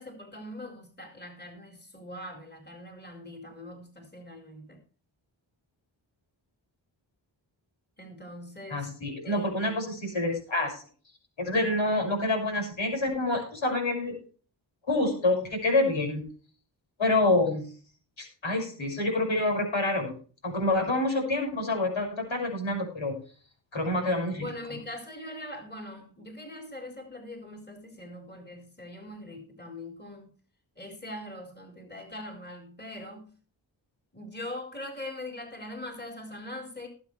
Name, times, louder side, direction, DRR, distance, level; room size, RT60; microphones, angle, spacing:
voice 1, 0.0-4.8 8.0-8.9 9.2-9.7 24.4-30.3 30.8-33.3 34.1-36.9, left 1 dB, 20° left, 4.4 m, -42 dB
voice 2, 8.7-10.8 11.4-14.1 14.9-16.2 17.0-17.7 18.2-20.1 20.4-23.2 23.7-24.8, left 2 dB, 75° left, 6.2 m, -27 dB
19.0 x 8.2 x 3.3 m
cardioid pair, 45°, 47 cm